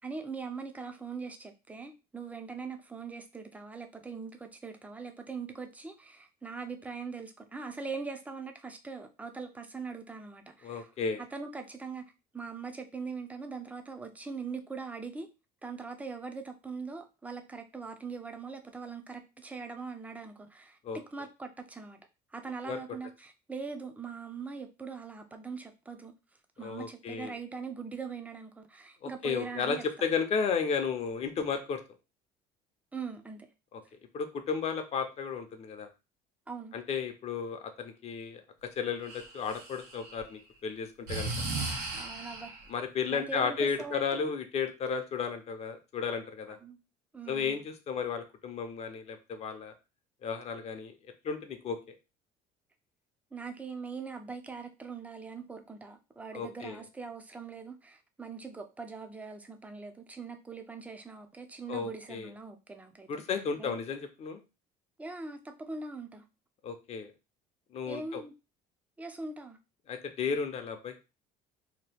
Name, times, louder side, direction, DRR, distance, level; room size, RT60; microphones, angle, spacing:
voice 1, 0.0-10.9 11.2-15.3 15.6-22.0 22.3-26.1 26.6-29.8 32.9-33.5 36.5-36.7 41.9-42.6 43.1-44.3 46.6-46.8 47.1-47.6 53.3-63.2 63.6-63.8 65.0-66.2 67.9-68.3 69.0-69.6, right 4 dB, 10° right, 0.5 m, -41 dB
voice 2, 10.6-11.2 20.8-21.0 22.7-22.8 26.6-27.3 29.0-31.8 33.7-33.8 34.1-35.9 36.7-41.3 42.7-46.6 47.3-49.7 50.2-50.9 51.2-51.9 56.3-56.8 61.7-62.3 63.1-64.4 66.6-67.1 67.7-68.2 69.9-71.0, left 6 dB, 45° left, 0.6 m, -33 dB
Breathing, 39.0-40.2 41.1-42.6, right 3 dB, 85° right, 1.0 m, -36 dB
2.8 x 2.2 x 3.3 m
cardioid pair, 105°, 15 cm